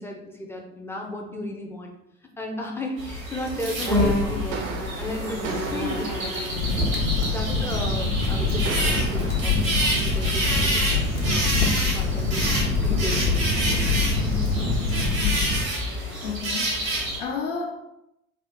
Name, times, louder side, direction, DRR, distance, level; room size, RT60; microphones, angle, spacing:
voice 1, 0.0-1.9 2.4-6.7 7.3-11.5 11.8-13.5, left 1 dB, 5° left, 0 dB, 0.5 m, -34 dB
sound 1, 3.0-17.2, right 1 dB, 80° right, 1.0 m, -28 dB
sound 2, 4.5-9.4, right 5 dB, 40° right, 0.5 m, -37 dB
Crackle, 6.5-15.6, left 3 dB, 45° left, 0.9 m, -24 dB
voice 2, 15.2-15.7 16.2-17.7, left 5 dB, 65° left, 0 dB, 0.6 m, -33 dB
3.3 x 2.4 x 3.5 m, 0.85 s
figure-of-eight pair, 65°, 40 cm